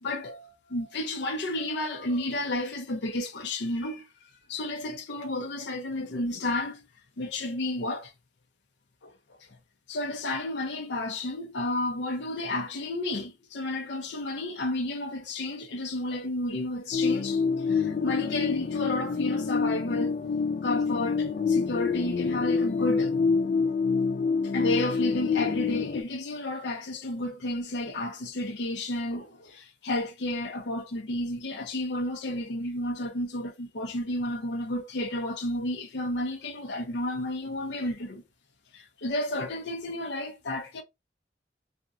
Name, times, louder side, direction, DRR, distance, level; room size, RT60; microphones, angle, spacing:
voice 1, 0.0-4.1 4.5-6.8 7.2-8.1 9.0-9.1 9.9-20.2 20.6-23.2 24.5-38.2 38.7-40.8, left 1 dB, 85° left, 0.7 m, -32 dB
sound 1, 16.9-26.0, left 5 dB, 50° left, 0.3 m, -27 dB
4.2 x 2.4 x 2.5 m
head